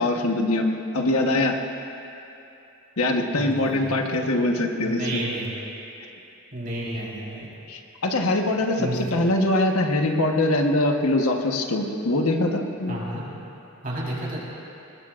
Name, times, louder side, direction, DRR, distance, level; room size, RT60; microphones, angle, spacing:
voice 1, 0.0-1.6 3.0-5.2 7.7-13.0, left 2 dB, 85° left, 3 dB, 1.2 m, -23 dB
voice 2, 3.3-3.9 4.8-5.5 6.5-7.5 8.8-8.9 12.9-13.3 13.8-14.4, right 1 dB, 40° right, -5 dB, 4.1 m, -31 dB
21.0 x 20.0 x 2.5 m, 2.8 s
head